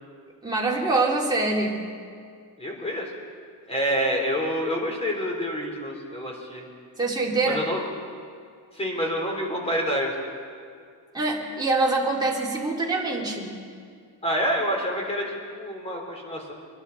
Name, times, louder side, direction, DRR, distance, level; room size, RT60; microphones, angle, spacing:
voice 1, 0.4-1.8 7.0-7.7 11.1-13.5, right 3 dB, 10° right, -4 dB, 3.0 m, -24 dB
voice 2, 2.6-3.1 3.7-6.6 7.5-7.8 8.7-10.2 14.2-16.5, equal, 15° left, 0 dB, 3.6 m, -27 dB
25.0 x 11.5 x 4.1 m, 2.2 s
cardioid pair, 115°, 47 cm